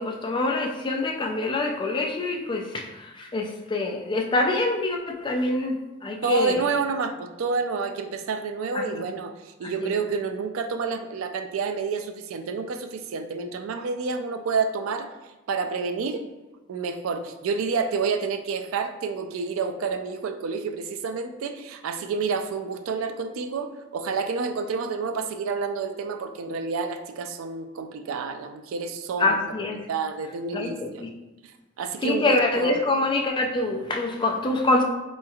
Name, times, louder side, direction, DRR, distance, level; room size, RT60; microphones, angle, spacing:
voice 1, 0.0-6.6 8.7-9.0 9.6-9.9 29.2-29.8 30.5-31.1 32.0-34.8, left 2 dB, 25° left, 2 dB, 0.3 m, -25 dB
voice 2, 6.2-15.1 15.5-16.3 16.7-29.4 29.9-31.0 31.4-31.5 31.8-32.7, right 4 dB, 80° right, 8 dB, 0.3 m, -29 dB
4.1 x 3.1 x 2.3 m, 1.0 s
head